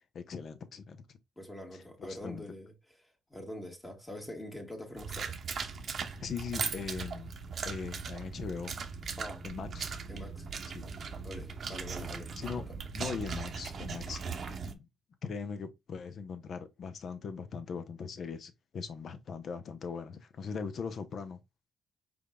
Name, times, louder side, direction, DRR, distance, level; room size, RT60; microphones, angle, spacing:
voice 1, 0.1-1.0 2.0-2.4 6.2-7.3 7.6-8.8 9.4-9.9 10.7-10.9 12.4-12.6 12.9-14.2 14.6-14.9 15.2-21.4, left 5 dB, 55° left, 0.7 m, -40 dB
voice 2, 1.4-2.7 3.0-5.3 9.2-9.5 10.1-10.5 11.2-12.8, left 1 dB, 15° left, 1.5 m, -44 dB
sound 1, 5.0-14.7, right 5 dB, 50° right, 0.7 m, -39 dB
5.0 x 3.8 x 2.2 m
cardioid pair, 90°, 0 cm